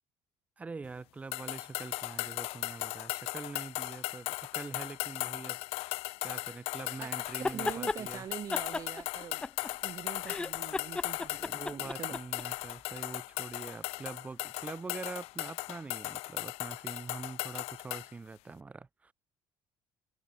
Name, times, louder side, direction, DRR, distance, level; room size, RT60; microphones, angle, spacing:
voice 1, 0.6-5.6 6.2-8.3 11.3-19.1, right 4 dB, 15° right, 2.4 m, -44 dB
sound 1, 1.3-18.1, left 21 dB, 80° left, 1.7 m, -38 dB
sound 2, 7.3-8.0 8.5-9.9 10.2-12.4, left 3 dB, 10° left, 0.5 m, -35 dB
voice 2, 7.4-9.4 9.8-12.2, right 9 dB, 35° right, 3.1 m, -44 dB
cardioid pair, 180°, 10 cm